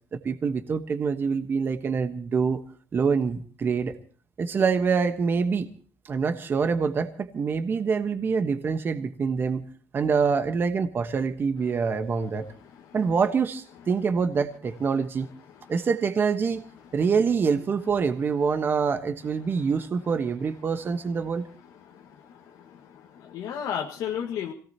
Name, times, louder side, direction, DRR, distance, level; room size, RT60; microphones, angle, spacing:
voice 1, 0.1-2.6 2.9-4.0 4.4-5.7 6.0-9.6 9.9-12.5 12.9-15.3 15.7-16.6 16.9-21.5, right 5 dB, 35° right, 8 dB, 1.2 m, -25 dB
voice 2, 21.9-24.5, left 8 dB, 85° left, 0 dB, 1.7 m, -34 dB
26.0 x 17.5 x 2.9 m, 0.42 s
cardioid pair, 145°, 6 cm